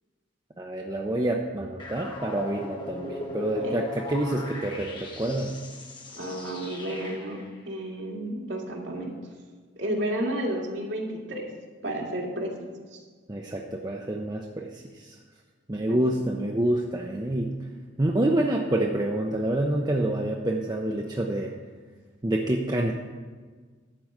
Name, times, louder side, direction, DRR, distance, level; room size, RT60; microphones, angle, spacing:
voice 1, 0.6-5.6 13.3-15.2 15.7-17.7 18.0-21.5 22.2-22.9, right 1 dB, 20° right, 0 dB, 0.6 m, -27 dB
sound 1, 1.8-7.5, left 2 dB, 25° left, 1.1 m, -38 dB
voice 2, 6.1-7.4 7.7-9.2 9.8-11.5 11.8-13.0 15.9-16.0, right 1 dB, 80° right, -1 dB, 2.1 m, -32 dB
12.0 x 4.7 x 7.7 m, 1.5 s
head